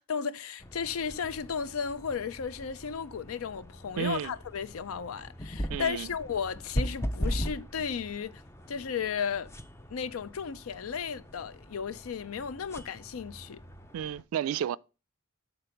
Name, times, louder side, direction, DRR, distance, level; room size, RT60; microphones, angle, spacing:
voice 1, 0.0-8.4 8.7-9.5 9.9-13.6, left 6 dB, 90° left, 0.5 m, -34 dB
sound 1, 0.6-14.2, equal, 15° left, 0.4 m, -39 dB
voice 2, 4.0-4.3 5.7-6.1 13.9-14.8, right 9 dB, 85° right, 0.3 m, -32 dB
6.8 x 4.0 x 5.7 m
head